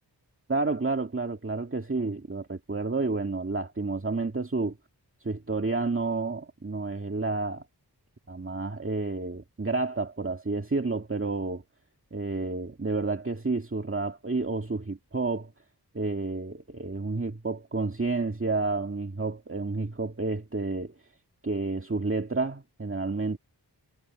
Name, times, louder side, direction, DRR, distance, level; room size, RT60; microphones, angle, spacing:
voice 1, 0.5-4.7 5.2-7.6 8.3-11.6 12.1-15.5 15.9-20.9 21.4-23.4, right 3 dB, 30° right, 2.0 m, -30 dB
wide cardioid pair, 60°, 41 cm